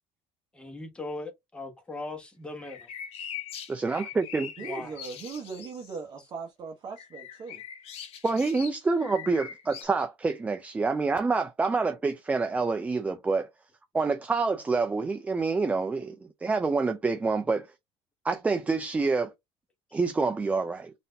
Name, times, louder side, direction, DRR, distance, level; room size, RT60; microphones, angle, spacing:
voice 1, 0.5-2.9 4.6-5.0, left 2 dB, 10° left, 1.0 m, -39 dB
sound 1, 2.6-6.0 6.9-9.8, left 9 dB, 55° left, 0.8 m, -42 dB
voice 2, 3.7-4.5 8.2-13.5 13.9-16.1 16.4-17.7 18.2-19.3 19.9-20.9, right 4 dB, 10° right, 0.3 m, -27 dB
voice 3, 4.6-7.6, right 5 dB, 35° right, 0.9 m, -39 dB
4.0 x 2.6 x 3.3 m
cardioid pair, 165°, 12 cm